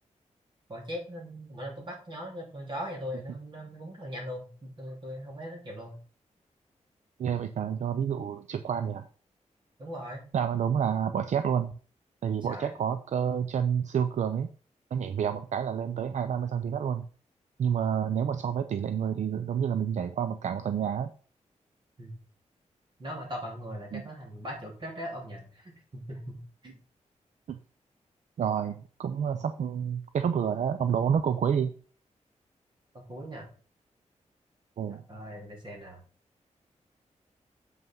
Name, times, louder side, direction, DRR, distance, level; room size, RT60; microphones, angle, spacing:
voice 1, 0.7-5.9 9.8-10.2 12.4-12.7 22.0-22.2 23.0-26.8 32.9-33.5 34.9-36.0, equal, 40° right, -1 dB, 3.5 m, -40 dB
voice 2, 7.2-9.1 10.3-11.7 12.2-14.5 14.9-17.0 17.6-21.1 23.9-24.0 27.5-27.6 28.4-31.7 34.8-35.0, right 8 dB, 70° right, 10 dB, 0.5 m, -29 dB
7.8 x 5.6 x 5.5 m, 0.40 s
wide cardioid pair, 180°, 12 cm